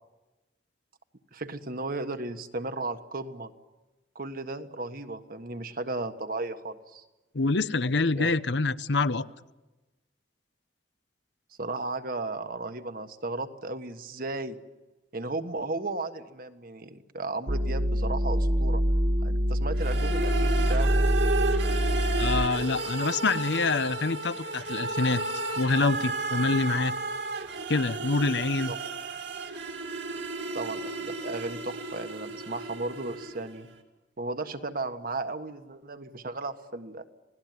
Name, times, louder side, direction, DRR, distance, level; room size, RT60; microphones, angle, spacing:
voice 1, 1.3-3.5 4.1-7.0 8.1-8.3 11.6-14.6 15.1-18.8 19.2-20.9 28.7-28.8 30.5-33.7 34.2-37.0, right 2 dB, 50° right, 8 dB, 1.5 m, -35 dB
voice 2, 7.3-9.3 22.2-25.2 25.6-27.0 27.7-28.7, left 3 dB, 65° left, 14 dB, 0.8 m, -26 dB
sound 1, 17.5-22.5, equal, 35° right, 0.9 m, -25 dB
sound 2, 19.8-33.6, right 3 dB, 70° right, 2.7 m, -33 dB
28.5 x 18.5 x 9.5 m, 1.1 s
head